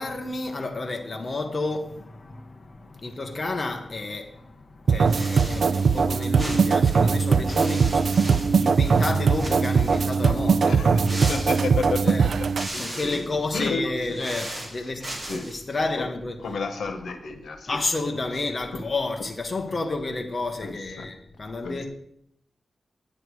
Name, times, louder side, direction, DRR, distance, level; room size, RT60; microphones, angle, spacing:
voice 1, 0.0-11.3 12.0-12.3 12.7-16.5 17.7-21.9, left 2 dB, 30° left, 1.0 m, -31 dB
sound 1, 4.9-12.7, right 5 dB, 65° right, 0.4 m, -21 dB
sound 2, 5.1-6.1 6.4-9.1 9.3-10.2 11.0-12.0 12.4-13.3 14.0-15.6, right 1 dB, 20° right, 2.2 m, -37 dB
voice 2, 10.6-12.1 12.7-13.2 13.5-14.2 15.3-15.5 16.4-17.7 20.6-21.1 21.6-21.9, left 3 dB, 85° left, 1.3 m, -31 dB
9.8 x 8.8 x 4.7 m
wide cardioid pair, 165°, 0 cm